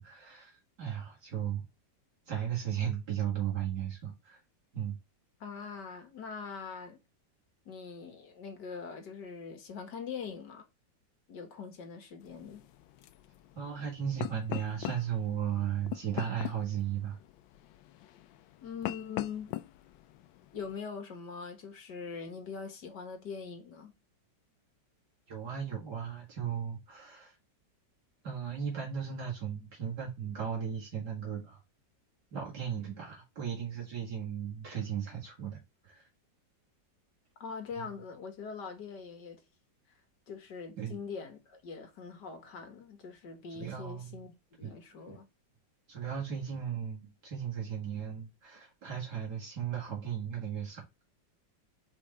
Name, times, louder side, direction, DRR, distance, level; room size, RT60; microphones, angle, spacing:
voice 1, 0.0-1.6 2.3-4.4 4.7-5.0 13.6-17.2 25.3-27.4 28.2-31.6 32.3-36.1 40.8-41.0 43.6-44.1 44.6-44.7 45.1-45.2 45.9-50.8, right 8 dB, 60° right, 2.4 m, -36 dB
voice 2, 5.4-7.0 7.7-10.7 11.3-12.6 18.6-19.5 20.5-23.9 37.4-39.4 40.3-45.3, left 5 dB, 65° left, 1.9 m, -42 dB
sound 1, 12.2-20.8, left 15 dB, 85° left, 1.3 m, -42 dB
4.8 x 4.8 x 4.2 m
omnidirectional pair, 2.0 m